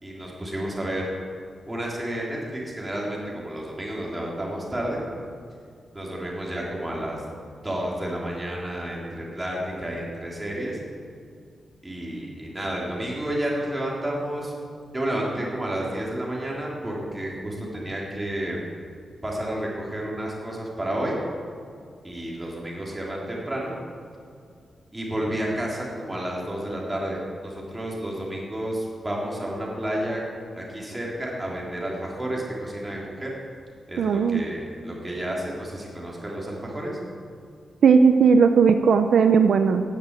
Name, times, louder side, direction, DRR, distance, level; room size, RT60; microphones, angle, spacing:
voice 1, 0.0-1.1 1.7-5.0 5.9-7.2 7.6-10.8 11.8-14.5 14.9-18.6 19.2-21.2 22.0-23.7 24.9-30.2 30.5-33.3 33.9-37.0, right 1 dB, 10° right, -3 dB, 3.5 m, -31 dB
voice 2, 34.0-34.5 37.8-39.8, right 5 dB, 70° right, 7 dB, 0.8 m, -17 dB
16.0 x 10.5 x 8.3 m, 2.3 s
wide cardioid pair, 170°, 0 cm